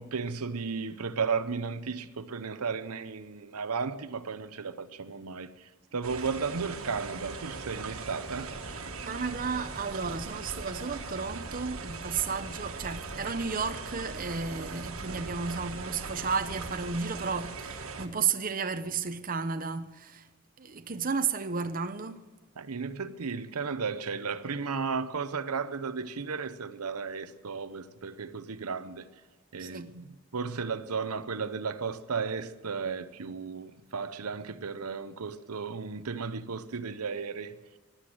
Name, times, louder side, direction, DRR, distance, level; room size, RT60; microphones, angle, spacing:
voice 1, 0.0-8.5 22.6-29.2 29.5-37.6, right 5 dB, 85° right, 0.8 m, -34 dB
sound 1, 6.0-18.1, right 4 dB, 65° right, 1.6 m, -40 dB
sound 2, 8.2-16.9, equal, 45° left, 4.2 m, -48 dB
voice 2, 9.0-20.3 20.6-22.2 29.6-29.9, right 5 dB, 40° right, 0.8 m, -33 dB
15.0 x 11.5 x 7.7 m
head